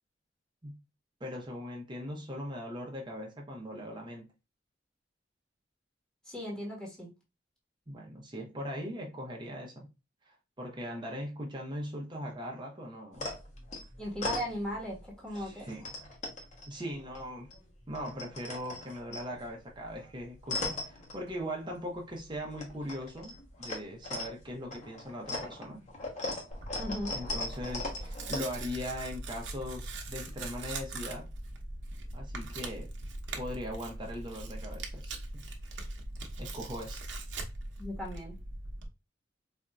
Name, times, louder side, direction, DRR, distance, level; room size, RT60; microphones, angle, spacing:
voice 1, 1.2-4.3 7.9-9.9 10.3-13.3 15.3-15.9 16.7-17.5 17.9-23.3 23.6-25.8 27.1-31.3 32.1-32.9 33.4-35.4 36.4-37.0, equal, 25° right, 0.9 m, -40 dB
voice 2, 6.2-7.1 14.0-15.9 26.8-27.2 37.8-38.4, equal, 5° left, 1.4 m, -37 dB
sound 1, 13.1-15.0 15.3-17.6 17.8-21.8 22.1-28.4, left 2 dB, 40° left, 1.2 m, -39 dB
Tearing, 26.5-38.9, right 2 dB, 80° right, 0.9 m, -41 dB
4.2 x 2.7 x 2.3 m
head